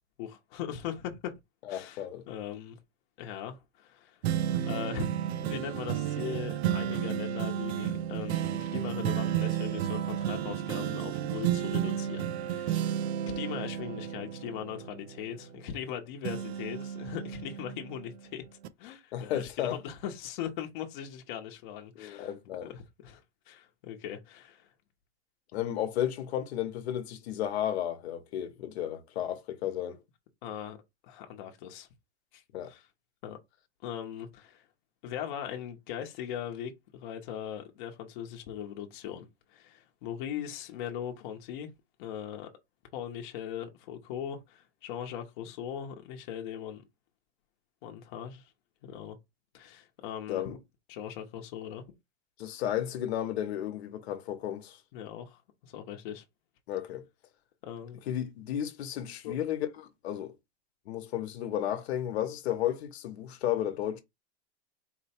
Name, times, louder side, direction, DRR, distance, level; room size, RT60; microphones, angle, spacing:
voice 1, 0.2-1.3 1.7-2.8 3.2-4.2 4.6-18.5 18.8-22.3 22.7-24.7 30.4-30.8 31.0-31.9 32.3-32.9 33.2-33.4 33.8-34.7 35.0-41.7 42.0-42.5 42.9-46.8 47.8-48.5 48.8-49.2 49.5-50.6 50.9-51.8 54.9-56.2 57.6-58.0 59.2-59.3, left 9 dB, 50° left, 0.9 m, -40 dB
voice 2, 1.6-2.2 19.1-19.8 22.0-22.7 25.5-30.0 32.5-32.7 50.3-50.5 52.4-54.8 56.7-57.0 58.1-60.3 60.9-64.0, left 11 dB, 75° left, 1.0 m, -33 dB
sound 1, 4.2-15.9 16.2-18.1 18.6-18.7, right 10 dB, 80° right, 0.6 m, -32 dB
4.4 x 2.1 x 4.3 m
supercardioid pair, 170°, 32 cm